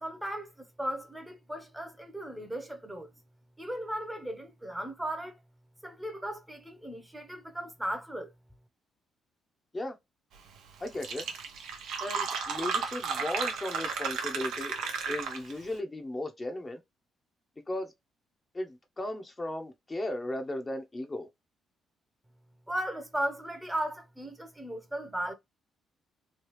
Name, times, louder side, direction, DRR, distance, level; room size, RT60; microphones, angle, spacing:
voice 1, 0.0-3.1 3.6-5.4 5.8-8.3 22.7-25.3, right 1 dB, 10° right, 0.8 m, -36 dB
Fill (with liquid), 10.6-10.7 10.9-15.6, right 6 dB, 85° right, 0.8 m, -33 dB
voice 2, 10.8-11.3 12.0-14.8 15.1-16.8 17.7-17.9 18.5-21.3, left 1 dB, 25° left, 0.7 m, -36 dB
3.2 x 2.3 x 3.1 m
cardioid pair, 90°, 0 cm